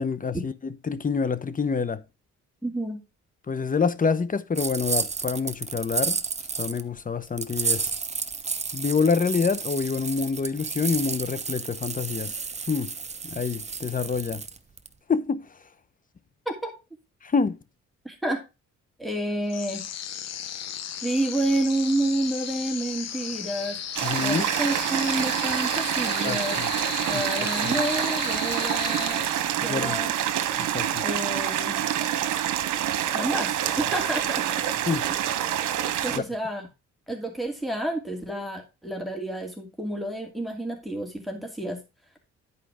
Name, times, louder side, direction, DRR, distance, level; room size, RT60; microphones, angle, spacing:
voice 1, 0.0-2.0 3.5-6.2 6.6-7.9 8.7-12.4 12.7-12.9 13.2-14.4 15.1-15.5 17.2-17.6 24.0-24.4 26.2-26.7 27.1-27.8 29.6-30.0 30.6-31.0 34.9-35.1 36.1-36.2, left 5 dB, 25° left, 0.9 m, -27 dB
voice 2, 2.6-3.0 16.5-16.7 18.0-18.4 19.0-19.8 21.0-23.8 24.2-26.6 27.1-29.2 29.6-30.1 31.0-31.8 33.1-34.6 36.0-36.7 37.1-41.8, right 1 dB, ahead, 2.6 m, -29 dB
sound 1, 4.6-6.8 7.4-14.9, right 5 dB, 20° right, 0.8 m, -31 dB
sound 2, 19.5-29.7, left 9 dB, 60° left, 1.0 m, -35 dB
sound 3, 23.9-36.2, right 11 dB, 80° right, 1.2 m, -27 dB
10.5 x 4.9 x 4.9 m
cardioid pair, 90°, 30 cm